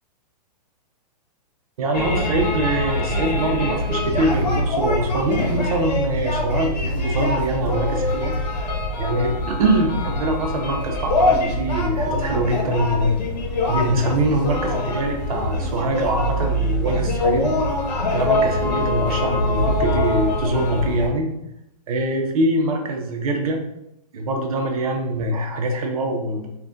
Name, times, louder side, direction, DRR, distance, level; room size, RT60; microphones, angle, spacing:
voice 1, 1.8-8.3 9.0-13.2 13.7-17.5 18.1-21.3 21.9-23.6 24.1-26.5, right 1 dB, 60° right, 2 dB, 0.7 m, -23 dB
sound 1, 1.9-21.1, left 1 dB, 75° left, 1.0 m, -24 dB
3.3 x 2.4 x 2.5 m, 0.82 s
hypercardioid pair, 155°, 21 cm